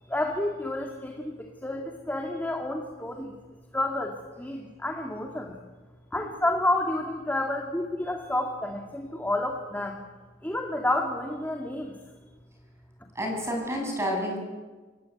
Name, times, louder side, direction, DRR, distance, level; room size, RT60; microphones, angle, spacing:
voice 1, 0.1-3.3 3.7-5.5 6.1-10.0 10.4-11.9, left 1 dB, 10° left, 2 dB, 2.2 m, -30 dB
voice 2, 13.1-14.4, equal, 15° right, 1 dB, 7.9 m, -29 dB
26.5 x 20.0 x 9.6 m, 1.3 s
head